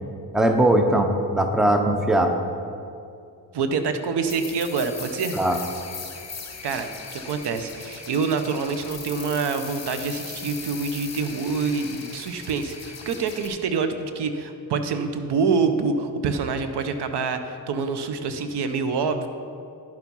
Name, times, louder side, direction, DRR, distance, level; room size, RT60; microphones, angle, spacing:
voice 1, 0.3-2.3 5.3-5.6, right 1 dB, ahead, 5 dB, 0.7 m, -20 dB
voice 2, 3.5-5.6 6.6-19.3, right 5 dB, 65° right, 8 dB, 0.9 m, -26 dB
sound 1, 4.3-13.5, left 5 dB, 35° left, 1.5 m, -39 dB
10.5 x 7.3 x 5.5 m, 2.5 s
cardioid pair, 105°, 44 cm